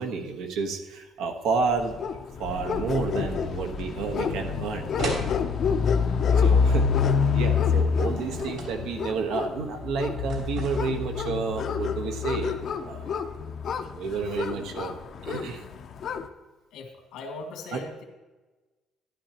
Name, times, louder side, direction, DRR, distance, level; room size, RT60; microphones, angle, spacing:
voice 1, 0.0-1.9 2.4-4.9 6.4-6.9 7.3-12.6 12.8-13.2 13.9-14.9 15.2-15.6 17.7-17.8, right 4 dB, 85° right, 5 dB, 1.2 m, -30 dB
sound 1, 1.7-16.2, left 6 dB, 45° left, 0.6 m, -27 dB
sound 2, 5.0-5.3 8.2-8.8 10.3-11.0, right 3 dB, 65° right, 3.4 m, -33 dB
voice 2, 6.3-6.6 14.3-14.6 16.7-18.0, left 3 dB, 85° left, 2 dB, 1.9 m, -41 dB
11.5 x 11.5 x 3.0 m, 1.2 s
cardioid pair, 160°, 0 cm